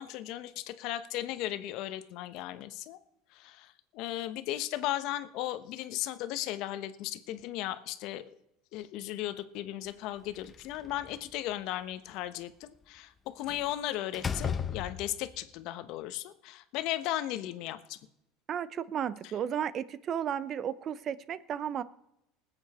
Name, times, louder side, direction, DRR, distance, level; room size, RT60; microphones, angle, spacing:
voice 1, 0.0-3.0 3.3-8.3 8.7-18.0, left 14 dB, 60° left, 11 dB, 1.0 m, -36 dB
Slam, 10.3-11.3 13.5-13.7 14.1-15.4, left 6 dB, 25° left, 0.8 m, -35 dB
voice 2, 18.5-21.8, right 9 dB, 40° right, 17 dB, 0.7 m, -33 dB
20.0 x 8.1 x 4.3 m, 0.81 s
supercardioid pair, 110°, 0 cm